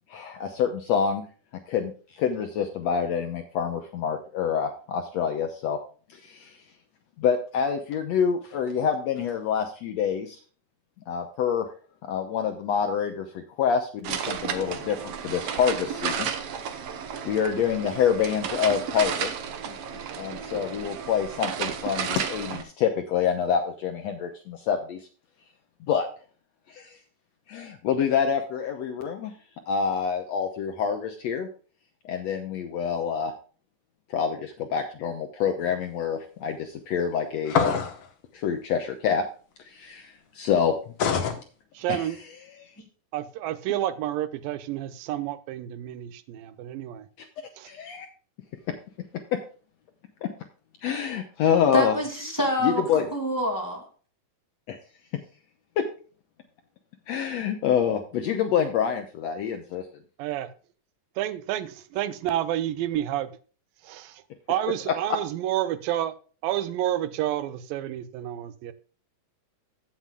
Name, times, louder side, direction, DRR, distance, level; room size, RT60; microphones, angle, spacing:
voice 1, 0.1-1.2 1.7-5.8 6.1-6.7 7.2-10.4 11.1-11.7 12.0-16.3 17.2-19.4 19.7-19.8 20.2-25.1 25.8-26.1 26.7-27.0 27.5-29.3 29.7-31.5 32.1-33.3 34.1-37.5 38.3-39.2 39.6-40.9 41.9-42.2 42.5-42.7 47.2-47.3 47.6-48.1 50.2-50.3 50.8-52.0 52.6-53.2 54.7-54.8 55.8-55.9 57.1-59.9 64.9-65.0, left 7 dB, 70° left, 1.7 m, -27 dB
sound 1, 14.0-22.6, right 7 dB, 65° right, 1.6 m, -32 dB
sound 2, 37.5-38.0 41.0-41.4, left 6 dB, 55° left, 1.9 m, -24 dB
voice 2, 41.7-42.2 43.1-47.1 47.6-47.7 60.2-60.5 61.2-63.3 63.8-64.2 64.5-66.2 66.4-68.7, right 12 dB, 85° right, 2.5 m, -29 dB
voice 3, 51.7-52.8 53.1-53.9, equal, 5° left, 1.9 m, -26 dB
16.0 x 7.5 x 2.4 m
omnidirectional pair, 3.9 m